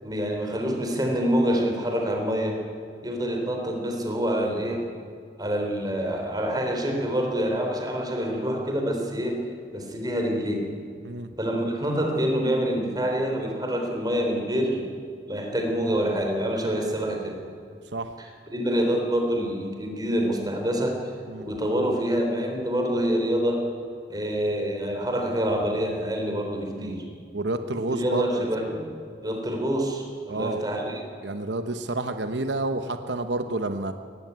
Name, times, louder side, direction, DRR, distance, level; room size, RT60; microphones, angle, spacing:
voice 1, 0.0-2.6 3.0-4.9 5.4-9.4 9.7-10.7 11.4-14.9 15.3-17.4 18.2-18.3 18.5-21.1 21.4-23.7 24.1-27.0 27.7-28.9 29.2-31.0, equal, 25° right, 2 dB, 3.6 m, -26 dB
voice 2, 27.3-28.5 30.3-30.6 31.2-33.9, right 2 dB, 85° right, 8 dB, 1.0 m, -29 dB
18.5 x 15.0 x 9.6 m, 2.2 s
head